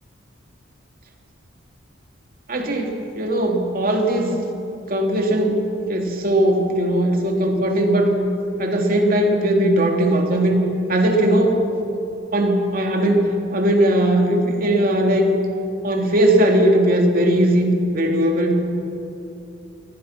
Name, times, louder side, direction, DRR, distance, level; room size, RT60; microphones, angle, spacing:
voice 1, 2.5-4.4 4.9-5.6 5.9-8.1 8.6-10.6 10.9-11.6 12.3-13.2 13.5-15.3 15.8-18.6, right 1 dB, 45° right, 2 dB, 3.2 m, -18 dB
28.5 x 22.5 x 6.1 m, 2.8 s
head